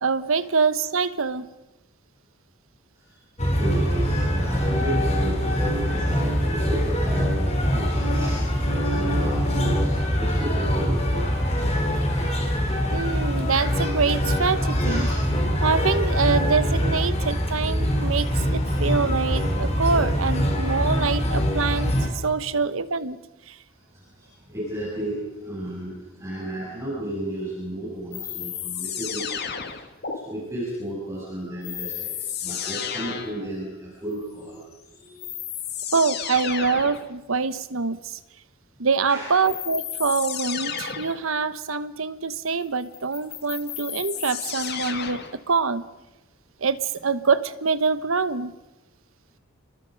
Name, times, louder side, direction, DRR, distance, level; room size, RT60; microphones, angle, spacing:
voice 1, 0.0-1.5 12.9-15.1 15.6-23.2 23.5-23.6 35.9-38.2 38.8-45.8 46.6-48.5, right 5 dB, 80° right, 13 dB, 1.1 m, -25 dB
voice 2, 2.9-9.9 10.2-11.2 14.8-15.2 23.7-35.2 39.1-39.4, right 1 dB, 15° right, -7 dB, 8.0 m, -34 dB
sound 1, 3.4-22.1, equal, 30° left, 3.7 m, -23 dB
sound 2, 28.1-30.2 31.6-33.5 34.7-34.8 35.2-37.1 39.4-41.2 42.9-45.4, left 8 dB, 50° left, 1.9 m, -32 dB
29.5 x 21.5 x 5.3 m, 1.1 s
head